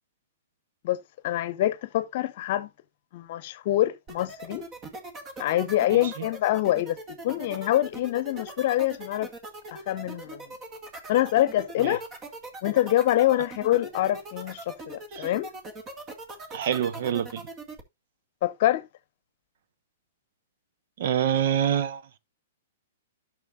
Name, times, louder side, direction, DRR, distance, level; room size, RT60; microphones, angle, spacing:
voice 1, 1.2-2.7 3.1-4.7 5.4-7.0 7.2-9.3 9.7-10.4 11.1-12.0 12.6-15.5 18.4-18.9, left 14 dB, 50° left, 0.8 m, -25 dB
sound 1, 4.1-17.8, right 2 dB, 30° right, 2.0 m, -40 dB
voice 2, 5.9-6.2 11.8-12.0 15.1-15.3 16.5-17.4 21.0-22.0, right 9 dB, 55° right, 0.9 m, -26 dB
12.5 x 6.3 x 2.5 m
hypercardioid pair, 115°, 0 cm